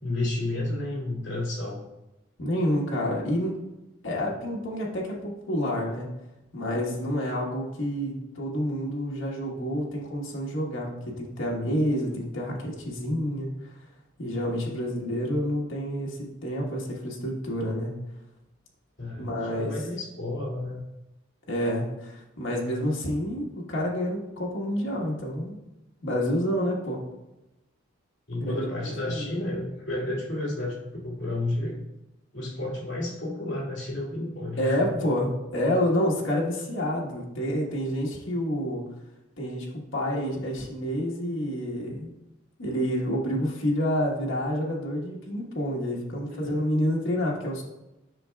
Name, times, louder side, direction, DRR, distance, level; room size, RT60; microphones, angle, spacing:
voice 1, 0.0-1.8 19.0-20.8 28.3-31.8 32.3-35.0 46.3-46.5, left 2 dB, 65° left, -5 dB, 2.2 m, -31 dB
voice 2, 2.4-3.5 4.0-6.1 6.5-13.7 14.2-17.9 19.2-19.8 21.5-25.6 26.0-27.0 28.4-28.6 29.0-29.3 34.6-38.8 39.4-39.7 39.9-42.1 42.6-47.6, equal, 85° left, -3 dB, 1.3 m, -28 dB
7.7 x 5.7 x 2.3 m, 0.95 s
head